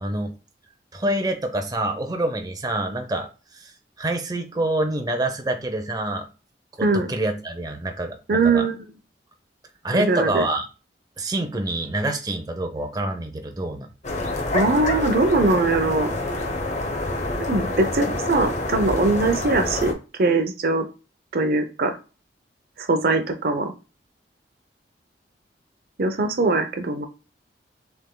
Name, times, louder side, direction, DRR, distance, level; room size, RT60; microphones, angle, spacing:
voice 1, 0.0-0.3 0.9-3.3 3.5-3.7 4.0-6.3 6.8-8.6 9.8-10.7 11.2-13.9, right 1 dB, 20° right, 5 dB, 0.7 m, -26 dB
voice 2, 8.3-8.8 9.9-10.4 14.5-16.1 17.5-19.9 20.2-20.8 21.3-21.9 22.8-23.7 26.0-27.1, right 3 dB, 60° right, 7 dB, 0.7 m, -21 dB
sound 1, 14.0-19.9, left 2 dB, 40° left, 1.0 m, -27 dB
6.6 x 3.5 x 2.3 m, 0.32 s
head